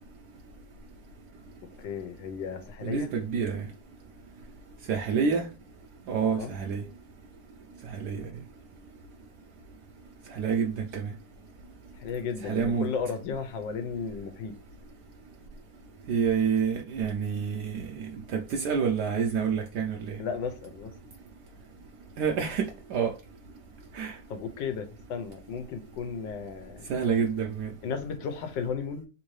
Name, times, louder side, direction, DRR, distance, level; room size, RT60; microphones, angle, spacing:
voice 1, 1.8-3.1 6.4-6.6 12.0-14.5 20.2-20.9 24.3-26.8 27.8-29.0, left 6 dB, 85° left, 1.4 m, -34 dB
voice 2, 2.8-3.7 4.9-5.5 6.1-6.8 8.0-8.3 10.3-11.1 12.4-12.9 16.1-20.2 22.2-23.1 23.9-24.2 26.9-27.7, right 6 dB, 75° right, 1.1 m, -28 dB
3.5 x 2.6 x 3.1 m
omnidirectional pair, 2.0 m